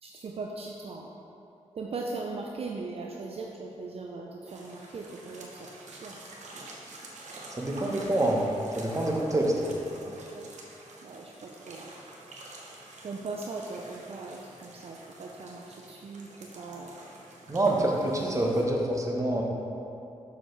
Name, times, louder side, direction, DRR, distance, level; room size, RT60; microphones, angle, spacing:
voice 1, 0.0-1.1 1.7-6.2 10.1-10.5 11.0-11.9 13.0-16.9 17.6-18.4, right 3 dB, 55° right, 0 dB, 0.5 m, -39 dB
sound 1, 4.5-18.6, right 2 dB, 80° right, 0.9 m, -48 dB
voice 2, 7.5-8.4 8.7-9.7 17.5-19.4, right 1 dB, 25° right, -1 dB, 1.0 m, -26 dB
6.8 x 6.2 x 3.2 m, 2.8 s
cardioid pair, 85°, 12 cm